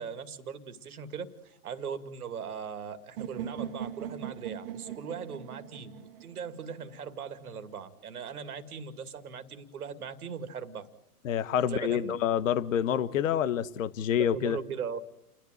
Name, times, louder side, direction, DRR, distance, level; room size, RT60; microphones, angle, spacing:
voice 1, 0.0-10.9 11.7-12.1 14.2-15.0, right 6 dB, 70° right, 2.2 m, -39 dB
sound 1, 3.2-7.1, right 9 dB, 40° right, 1.1 m, -40 dB
voice 2, 11.2-14.6, left 9 dB, 55° left, 1.2 m, -27 dB
29.5 x 11.5 x 9.2 m
hypercardioid pair, 130°, 46 cm